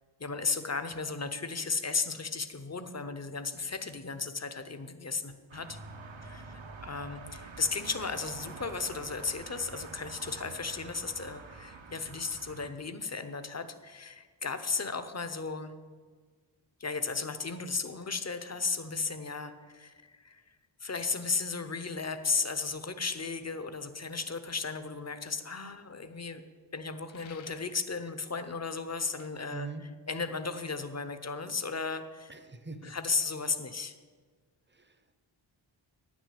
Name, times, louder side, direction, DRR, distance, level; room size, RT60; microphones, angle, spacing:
voice 1, 0.2-5.8 6.2-15.7 16.8-20.4 20.8-26.4 26.7-29.7 30.1-32.3 32.8-33.9, left 4 dB, 35° left, 10 dB, 0.8 m, -35 dB
sound 1, 5.5-12.7, right 4 dB, 75° right, 1.1 m, -47 dB
sound 2, 27.1-27.9 29.0-29.3, left 8 dB, 70° left, 0.7 m, -55 dB
voice 2, 29.5-29.8 32.3-32.9 34.7-35.2, right 4 dB, 25° right, 10 dB, 0.8 m, -43 dB
9.9 x 6.2 x 8.4 m, 1.5 s
wide cardioid pair, 95°, 47 cm